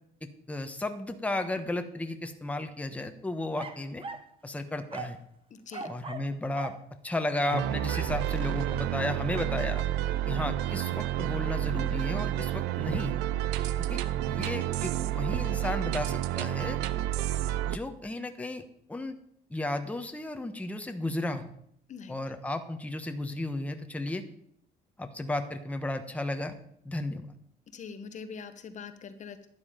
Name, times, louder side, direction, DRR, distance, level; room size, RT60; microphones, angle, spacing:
voice 1, 0.5-4.0 4.4-5.2 5.9-6.7 7.0-9.8 10.3-13.1 13.8-14.0 14.3-16.8 17.7-18.6 18.9-19.2 19.5-21.5 22.1-24.2 25.0-26.5 26.8-27.3, left 2 dB, 10° left, 6 dB, 1.2 m, -34 dB
sound 1, 3.6-4.3 4.9-5.2 5.7-6.3 6.6-6.8 7.4-8.2 9.3-9.6, right 4 dB, 30° right, 1.3 m, -40 dB
voice 2, 5.5-5.9 21.9-22.2 27.7-29.5, left 6 dB, 45° left, 10 dB, 1.2 m, -43 dB
sound 2, 7.5-17.8, right 12 dB, 90° right, 0.7 m, -30 dB
12.0 x 9.8 x 5.2 m, 0.68 s
cardioid pair, 110°, 17 cm